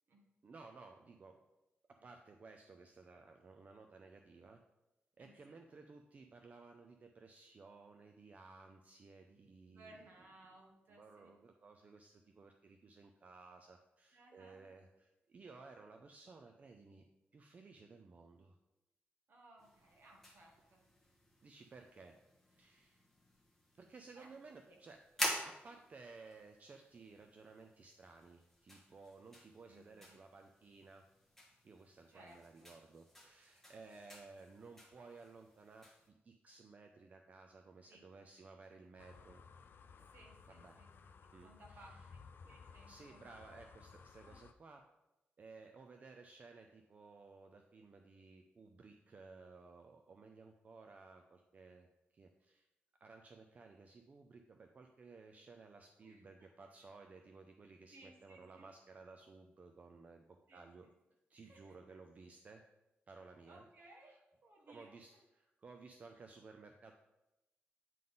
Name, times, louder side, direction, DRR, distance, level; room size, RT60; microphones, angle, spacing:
voice 1, 0.4-1.4 1.9-4.6 5.2-9.9 10.9-17.1 17.3-18.6 21.4-22.2 22.5-23.1 23.7-25.0 25.4-31.0 31.6-39.4 40.0-40.1 40.5-40.8 41.3-42.1 42.9-44.8 45.4-51.9 52.1-52.7 53.0-60.9 61.3-62.6 63.1-63.6 64.7-66.9, right 4 dB, 35° right, 4 dB, 0.4 m, -57 dB
voice 2, 5.2-5.6 9.7-11.3 14.1-14.8 19.3-20.8 24.2-24.8 25.7-25.8 29.7-30.2 32.1-32.7 37.9-38.0 40.0-43.6 44.2-44.4 56.0-56.5 57.9-58.7 60.5-60.7 61.4-62.0 63.5-65.2, right 1 dB, 55° right, 0 dB, 1.4 m, -62 dB
sound 1, 19.6-36.1, left 1 dB, 5° left, 1.2 m, -49 dB
sound 2, 39.0-44.5, left 5 dB, 60° left, 0.4 m, -58 dB
9.0 x 3.7 x 3.9 m, 0.97 s
wide cardioid pair, 165°, 4 cm